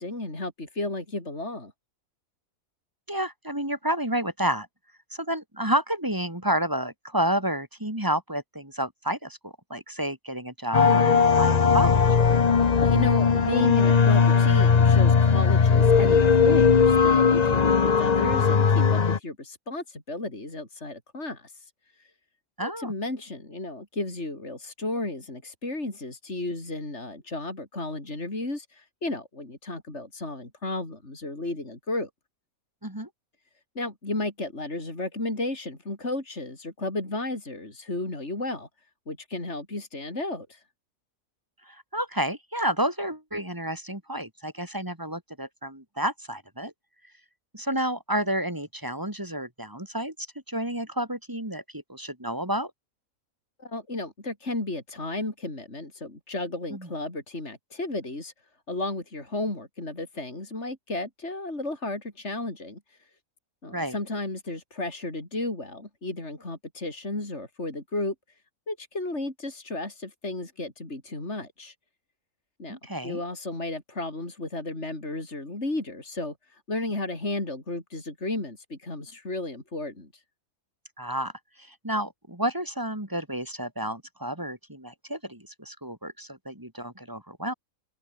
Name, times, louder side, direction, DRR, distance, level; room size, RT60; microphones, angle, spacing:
voice 1, 0.0-1.7 12.8-21.7 22.0-22.1 22.6-32.1 33.8-38.7 39.1-40.6 53.6-58.3 58.7-63.0 63.6-68.1 68.7-71.7 72.6-72.8 73.0-80.2, left 2 dB, 50° left, 5.4 m, -33 dB
voice 2, 3.1-4.7 5.1-12.0 22.6-22.9 32.8-33.1 41.7-46.7 47.5-50.1 50.5-52.7 56.7-56.9 63.7-64.0 72.7-73.2 81.0-81.3 81.6-87.5, right 1 dB, 15° right, 2.8 m, -30 dB
sound 1, 10.7-19.2, left 5 dB, 35° left, 0.9 m, -19 dB
omnidirectional pair, 1.5 m